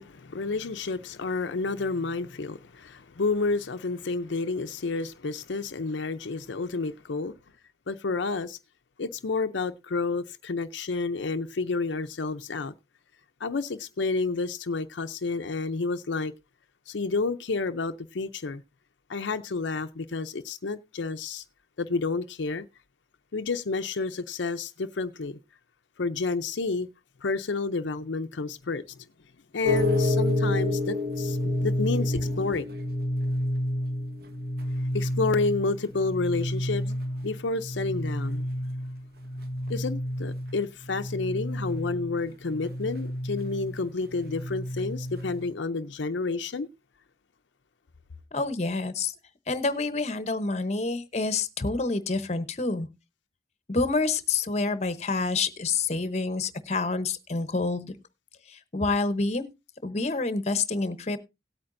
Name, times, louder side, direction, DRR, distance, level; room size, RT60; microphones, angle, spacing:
voice 1, 0.0-7.4 7.9-8.6 9.0-12.7 13.4-16.3 16.9-18.6 19.1-21.4 21.8-22.7 23.3-25.4 26.0-26.9 27.2-29.0 29.5-32.7 34.9-37.0 37.2-38.4 39.7-46.7, left 3 dB, 80° left, 0.6 m, -30 dB
sound 1, 29.6-45.5, left 1 dB, 55° right, 1.4 m, -30 dB
voice 2, 48.3-49.1 49.5-52.9 53.7-57.9 58.5-59.4 59.8-61.2, left 3 dB, 35° left, 0.8 m, -28 dB
17.5 x 8.7 x 2.6 m
head